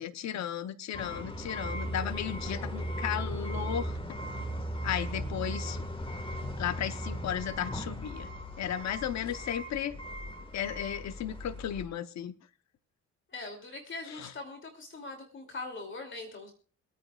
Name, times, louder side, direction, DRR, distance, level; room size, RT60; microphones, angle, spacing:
voice 1, 0.0-4.0 4.8-5.8 6.6-8.3 8.6-10.0 10.5-12.3 14.1-14.3, left 10 dB, 65° left, 11 dB, 0.9 m, -35 dB
sound 1, 0.9-11.8, equal, 15° left, 1.7 m, -37 dB
voice 2, 13.3-16.5, left 3 dB, 40° left, 4 dB, 2.8 m, -42 dB
26.0 x 9.2 x 2.4 m, 0.39 s
cardioid pair, 90°, 30 cm